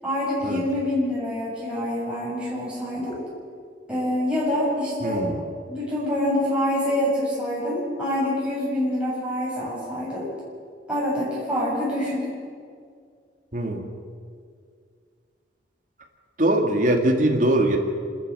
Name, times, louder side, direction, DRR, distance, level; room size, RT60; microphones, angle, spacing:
voice 1, 0.0-3.2 3.9-5.2 5.7-10.3 10.9-12.3, left 1 dB, 5° right, -8 dB, 7.7 m, -26 dB
voice 2, 5.0-5.4 13.5-13.8 16.4-17.8, right 1 dB, 45° right, 2 dB, 2.4 m, -21 dB
27.0 x 13.5 x 7.8 m, 2.1 s
head